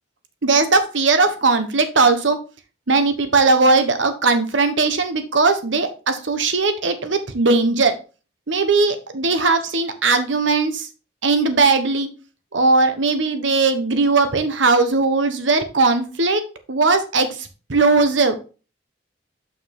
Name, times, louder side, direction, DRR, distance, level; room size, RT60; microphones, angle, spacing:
voice 1, 0.4-2.4 2.9-7.9 8.5-10.9 11.2-12.1 12.5-16.4 16.7-18.4, right 3 dB, 80° right, 9 dB, 1.1 m, -18 dB
6.7 x 5.8 x 3.5 m, 0.34 s
head